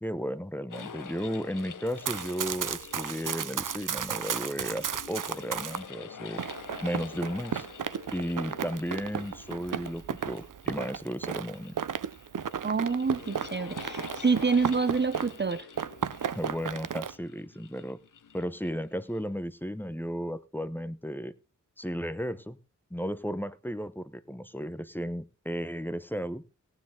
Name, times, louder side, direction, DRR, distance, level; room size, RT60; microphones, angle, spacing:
voice 1, 0.0-6.4 6.8-7.7 8.1-11.8 16.3-18.0 18.3-21.3 21.8-22.6 22.9-26.4, equal, 5° left, 13 dB, 0.9 m, -34 dB
sound 1, 0.7-19.3, left 6 dB, 85° left, 1.0 m, -47 dB
Run, 1.9-5.8 6.4-15.5 15.8-17.1, right 8 dB, 90° right, 0.7 m, -34 dB
voice 2, 12.6-15.7, right 4 dB, 35° right, 13 dB, 0.7 m, -27 dB
17.5 x 10.0 x 3.8 m, 0.31 s
wide cardioid pair, 75°, 31 cm